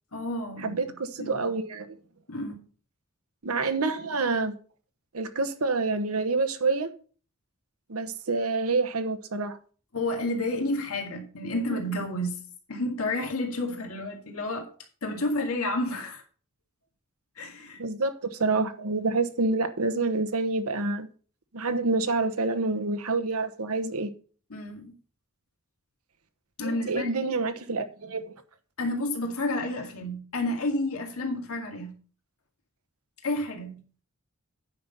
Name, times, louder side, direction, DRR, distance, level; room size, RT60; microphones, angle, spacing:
voice 1, 0.1-0.8 1.2-1.5 2.3-2.6 9.9-12.4 12.7-14.7 15.0-16.2 17.4-17.8 24.5-24.9 26.6-27.1 28.8-32.0 33.2-33.8, left 1 dB, 70° left, 2.1 m, -30 dB
voice 2, 0.6-1.9 3.4-4.5 5.1-6.9 7.9-9.6 11.5-11.6 17.8-21.1 21.5-24.1 26.6-28.3, right 3 dB, 75° right, 1.1 m, -27 dB
9.5 x 5.8 x 5.3 m
head